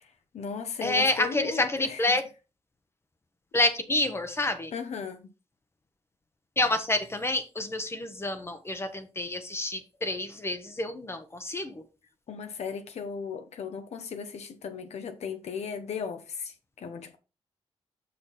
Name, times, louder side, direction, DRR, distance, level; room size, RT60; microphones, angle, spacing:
voice 1, 0.0-2.0 4.7-5.3 12.3-17.2, left 6 dB, 75° left, 0.9 m, -37 dB
voice 2, 0.8-2.2 3.5-4.7 6.6-11.8, left 2 dB, 20° left, 0.9 m, -28 dB
6.7 x 5.8 x 4.1 m
cardioid pair, 110°, 11 cm